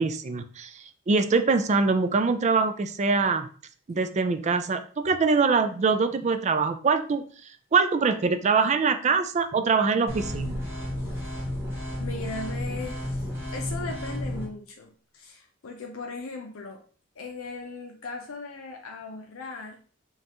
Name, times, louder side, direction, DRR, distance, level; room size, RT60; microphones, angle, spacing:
voice 1, 0.0-3.5 3.9-7.2 7.7-10.6, right 4 dB, 35° right, 9 dB, 0.3 m, -23 dB
sound 1, 10.1-14.5, left 1 dB, 10° right, 1.3 m, -32 dB
voice 2, 12.0-16.8 17.1-19.8, left 3 dB, 75° left, 2 dB, 0.6 m, -38 dB
5.3 x 2.4 x 2.9 m, 0.42 s
head